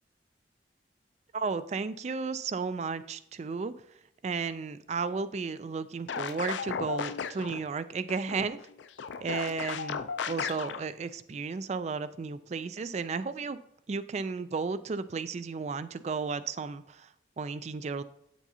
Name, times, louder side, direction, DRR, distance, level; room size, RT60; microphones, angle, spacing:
voice 1, 1.3-3.7 4.2-8.6 9.2-13.6 13.9-17.1 17.4-18.0, right 4 dB, 35° right, 14 dB, 0.3 m, -34 dB
sound 1, 6.1-7.6 8.1-10.8, left 6 dB, 80° left, 0.4 m, -35 dB
7.7 x 7.3 x 2.7 m, 0.76 s
head